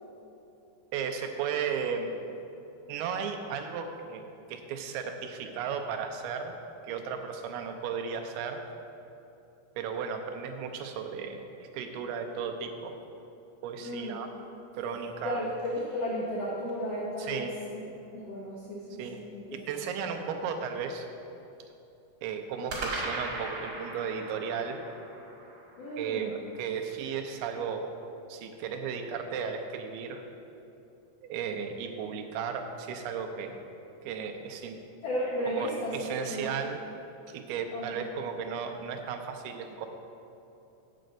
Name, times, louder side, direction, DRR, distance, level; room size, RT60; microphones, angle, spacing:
voice 1, 0.9-2.2 2.9-6.5 6.9-8.6 9.8-13.0 13.6-14.3 14.7-15.4 17.2-17.5 19.0-19.2 19.5-21.1 22.2-24.8 26.0-27.9 28.3-30.3 31.2-33.5 34.0-34.8 35.5-36.8 37.3-39.9, right 6 dB, 85° right, 4 dB, 2.7 m, -35 dB
voice 2, 13.8-14.2 15.2-17.8 18.1-19.7 25.8-26.3 35.0-36.5 37.7-38.0, equal, 75° left, -5 dB, 1.4 m, -34 dB
sound 1, 15.0-16.9 22.7-27.0, right 2 dB, 45° right, 1.8 m, -40 dB
8.9 x 5.2 x 7.7 m, 2.8 s
omnidirectional pair, 4.5 m